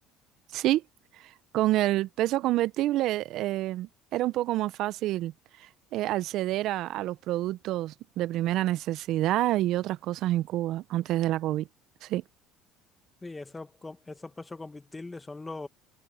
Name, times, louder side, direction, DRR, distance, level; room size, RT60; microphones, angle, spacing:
voice 1, 1.2-5.3 5.6-11.7 12.0-12.2, right 15 dB, 65° right, 1.0 m, -28 dB
voice 2, 13.2-15.7, left 3 dB, 20° left, 1.4 m, -41 dB
hypercardioid pair, 65°, 0 cm